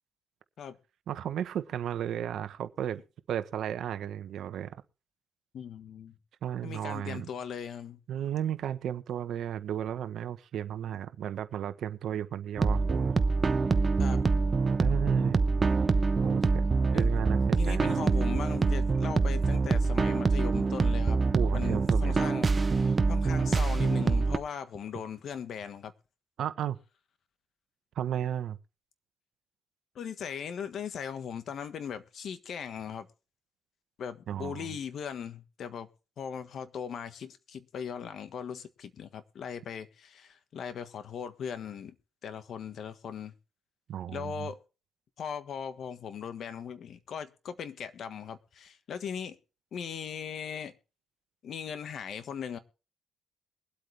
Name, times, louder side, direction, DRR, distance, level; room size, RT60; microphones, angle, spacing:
voice 1, 1.1-3.0 3.3-4.8 6.4-7.3 8.1-13.3 14.8-15.5 16.2-16.7 16.9-18.0 21.3-22.2 26.4-26.8 28.0-28.6 34.3-34.7 43.9-44.5, right 10 dB, 70° right, 1.1 m, -34 dB
voice 2, 5.5-6.1 6.6-8.0 14.0-14.2 16.9-17.1 17.6-21.2 21.5-25.9 29.9-33.1 34.0-35.9 36.2-41.9 42.2-43.3 44.1-44.6 45.2-49.4 49.7-50.7 51.4-52.6, left 7 dB, 65° left, 1.5 m, -39 dB
sound 1, 12.6-24.4, right 4 dB, 35° right, 0.9 m, -25 dB
22.0 x 8.3 x 3.4 m
cardioid pair, 90°, 0 cm